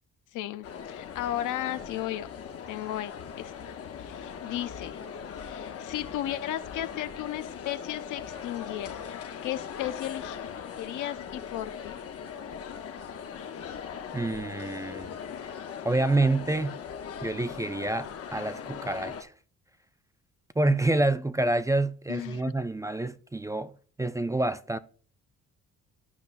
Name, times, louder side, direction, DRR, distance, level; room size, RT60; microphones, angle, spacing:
voice 1, 0.3-2.3 2.7-3.7 4.0-5.0 5.4-10.4 10.8-12.1 22.1-22.5, left 13 dB, 85° left, 0.6 m, -35 dB
sound 1, 0.6-19.2, left 7 dB, 50° left, 0.8 m, -40 dB
voice 2, 14.1-15.1 15.8-16.8 17.2-19.3 20.6-23.7 24.0-24.8, right 2 dB, 10° right, 0.3 m, -27 dB
12.5 x 5.3 x 2.5 m
cardioid pair, 90°, 30 cm